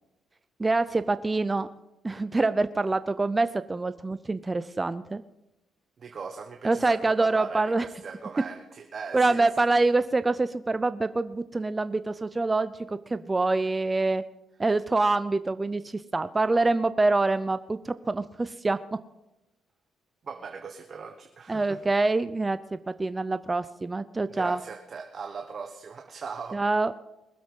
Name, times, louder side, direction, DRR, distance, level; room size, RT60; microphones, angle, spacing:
voice 1, 0.6-1.7 2.0-5.2 6.6-7.9 9.1-14.2 14.6-18.8 21.5-24.6 26.5-26.9, right 3 dB, 20° right, 13 dB, 0.5 m, -25 dB
voice 2, 6.0-9.9 20.2-21.8 24.3-26.6, right 5 dB, 45° right, 5 dB, 1.2 m, -40 dB
21.0 x 7.7 x 5.5 m, 0.94 s
cardioid pair, 90°, 0 cm